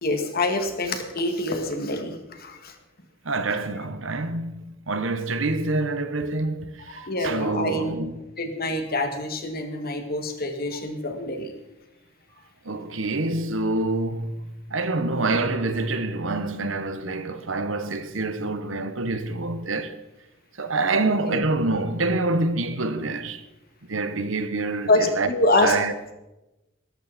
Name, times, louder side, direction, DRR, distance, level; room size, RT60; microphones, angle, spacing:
voice 1, 0.0-2.7 7.0-8.0 8.4-11.5 15.1-15.3 21.0-21.4 24.9-25.8, left 2 dB, 50° left, 2.3 m, -26 dB
voice 2, 3.2-8.2 12.6-20.0 20.6-23.4 23.9-25.3 25.6-26.1, right 2 dB, 70° right, 1.3 m, -26 dB
18.0 x 14.0 x 4.4 m
head